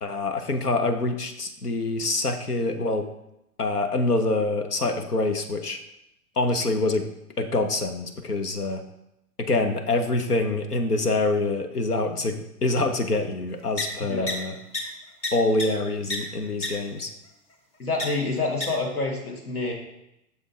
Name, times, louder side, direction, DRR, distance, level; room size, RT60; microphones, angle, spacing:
voice 1, 0.0-3.1 3.6-5.8 6.4-7.1 7.4-8.8 9.4-14.5 15.3-17.1, left 2 dB, 90° left, 7 dB, 0.8 m, -25 dB
sound 1, 13.8-13.9 14.3-14.4 14.7-14.8 15.2-15.3 15.6-15.7 16.1-16.2 16.6-16.7 18.0-18.1 18.6-18.7, left 2 dB, 15° left, 0.7 m, -27 dB
voice 2, 14.0-14.3 17.8-19.7, left 3 dB, 75° left, 0 dB, 1.8 m, -27 dB
6.7 x 5.1 x 3.8 m, 0.84 s
figure-of-eight pair, 105°, 45 cm